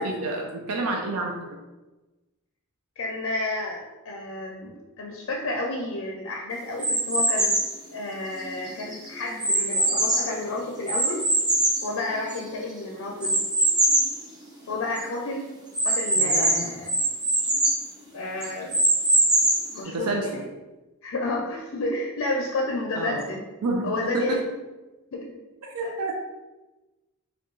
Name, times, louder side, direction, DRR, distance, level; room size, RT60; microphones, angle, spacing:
voice 1, 0.0-1.3 16.1-16.7 19.9-20.4 22.9-23.2 23.6-24.3 25.7-26.1, right 2 dB, 80° right, 1 dB, 0.5 m, -29 dB
voice 2, 3.0-7.6 7.9-11.3 11.8-13.4 14.7-15.5 15.8-17.0 18.0-18.7 19.7-20.4 21.0-23.4 23.8-24.4 25.1-25.3 25.8-26.1, left 2 dB, 60° left, 0 dB, 0.4 m, -31 dB
sound 1, 6.8-7.8 8.4-10.4 10.9-12.6 13.2-14.2 14.6-14.7 15.0-15.1 15.7-17.8 18.4-19.8, right 1 dB, 20° right, 0.8 m, -22 dB
4.4 x 2.2 x 3.0 m, 1.1 s
head